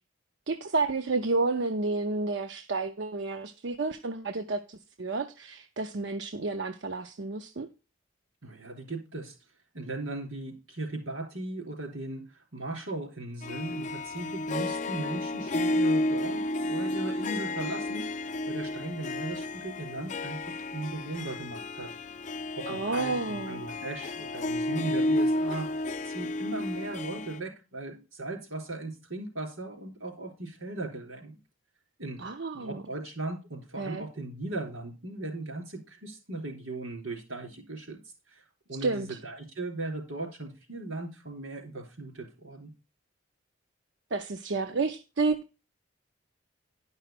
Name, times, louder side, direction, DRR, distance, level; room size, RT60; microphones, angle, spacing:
voice 1, 0.5-7.7 22.7-23.6 32.2-32.8 33.8-34.0 38.8-39.2 44.1-45.5, right 3 dB, 60° right, 0.6 m, -31 dB
voice 2, 8.4-9.4 9.7-21.9 22.5-31.4 32.0-32.2 32.5-38.0 38.3-42.7, right 2 dB, 85° right, 3.7 m, -38 dB
Harp, 13.4-27.4, left 1 dB, 35° left, 0.4 m, -32 dB
11.0 x 5.6 x 5.8 m
head